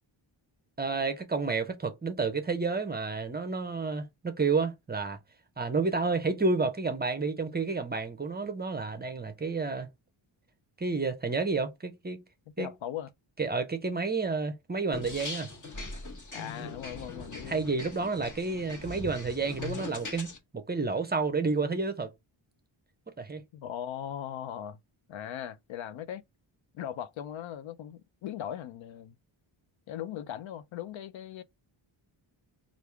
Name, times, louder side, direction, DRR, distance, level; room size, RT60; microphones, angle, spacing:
voice 1, 0.8-5.2 5.6-9.9 10.8-12.2 12.6-12.7 13.4-15.5 17.5-22.1 23.2-23.4, right 4 dB, 20° right, 0.6 m, -30 dB
voice 2, 12.6-13.1 16.3-17.6 23.5-24.8 25.1-26.2 26.7-29.1 29.9-31.4, left 10 dB, 70° left, 0.5 m, -39 dB
sound 1, 14.9-20.4, left 3 dB, 40° left, 1.3 m, -41 dB
3.4 x 2.5 x 4.5 m
wide cardioid pair, 135°, 48 cm